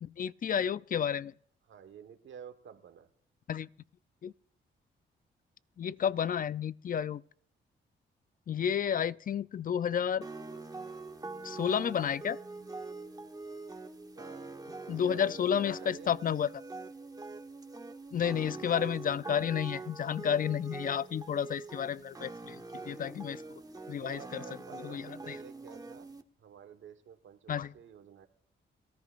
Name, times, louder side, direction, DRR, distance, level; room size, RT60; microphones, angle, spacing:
voice 1, 0.0-1.3 3.5-3.7 4.2-4.3 5.8-7.2 8.5-10.3 11.4-12.4 14.9-16.5 18.1-23.4 23.9-24.4 24.8-25.4 27.5-27.7, left 8 dB, 45° left, 0.5 m, -31 dB
voice 2, 1.7-3.1 14.1-14.5 14.9-16.2 18.5-18.6 23.0-23.2 24.0-26.1 26.4-28.3, right 8 dB, 75° right, 1.3 m, -50 dB
sound 1, 10.2-26.2, right 3 dB, 20° right, 1.2 m, -44 dB
23.5 x 14.0 x 2.5 m
cardioid pair, 75°, 20 cm